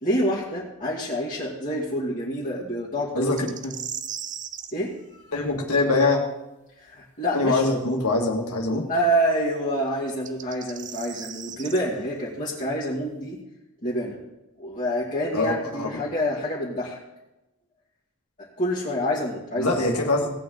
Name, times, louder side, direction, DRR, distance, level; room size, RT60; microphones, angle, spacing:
voice 1, 0.0-3.5 4.7-5.3 6.8-7.6 8.9-13.4 13.8-14.2 14.6-17.0 18.4-19.8, equal, 35° left, -7 dB, 2.3 m, -27 dB
voice 2, 3.1-3.7 5.3-6.2 7.3-8.9 15.3-15.9 19.6-20.4, left 2 dB, 85° left, 0 dB, 2.2 m, -23 dB
sound 1, 3.4-4.7 7.9-8.0 10.1-11.8, right 9 dB, 35° right, 0.6 m, -36 dB
18.0 x 8.5 x 4.0 m, 0.96 s
head